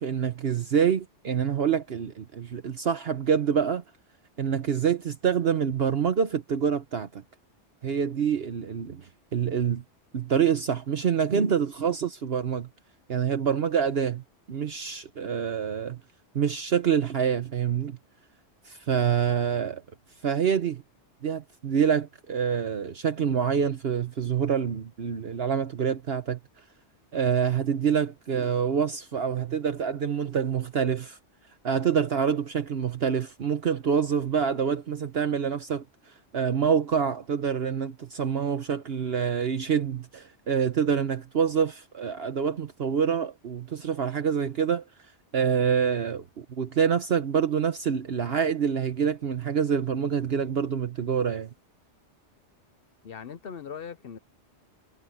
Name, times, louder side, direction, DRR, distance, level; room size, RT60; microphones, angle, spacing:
voice 1, 0.0-3.8 4.4-7.2 7.8-9.0 9.3-9.8 10.1-12.7 13.1-14.2 14.5-16.0 16.3-18.0 18.7-19.8 20.2-20.8 21.2-26.4 27.1-31.2 31.6-35.8 36.3-44.8 45.3-51.5, right 7 dB, 60° right, 1.2 m, -26 dB
voice 2, 53.0-54.2, left 7 dB, 60° left, 0.9 m, -39 dB
omnidirectional pair, 1.2 m